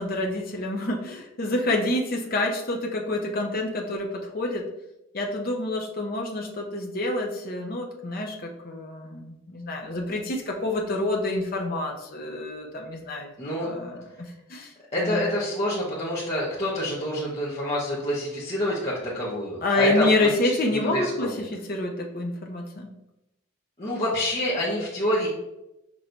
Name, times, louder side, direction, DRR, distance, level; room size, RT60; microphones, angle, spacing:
voice 1, 0.0-4.7 5.1-13.3 13.6-15.2 19.6-22.9, left 2 dB, 45° left, 1 dB, 0.7 m, -28 dB
voice 2, 13.4-13.7 14.9-21.3 23.8-25.3, left 1 dB, 30° left, -10 dB, 1.0 m, -27 dB
6.1 x 3.0 x 2.6 m, 0.90 s
head